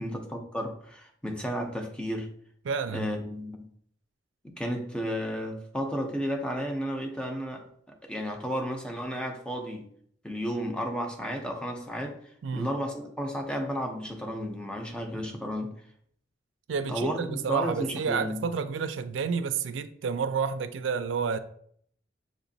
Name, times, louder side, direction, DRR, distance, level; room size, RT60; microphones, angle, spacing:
voice 1, 0.0-2.3 2.9-3.7 4.4-9.9 10.2-12.2 12.5-15.7 16.9-18.5, equal, 5° left, 0.6 m, -33 dB
voice 2, 2.6-3.1 12.4-12.7 16.7-21.4, right 5 dB, 90° right, 0.4 m, -30 dB
6.4 x 2.9 x 2.7 m
head